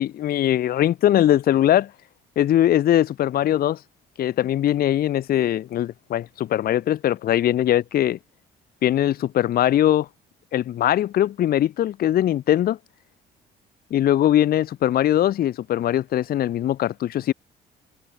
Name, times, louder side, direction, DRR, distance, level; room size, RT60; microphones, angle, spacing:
voice 1, 0.0-1.9 2.4-3.8 4.2-8.2 8.8-10.1 10.5-12.8 13.9-17.3, left 12 dB, 55° left, 0.6 m, -21 dB
supercardioid pair, 70°, 18 cm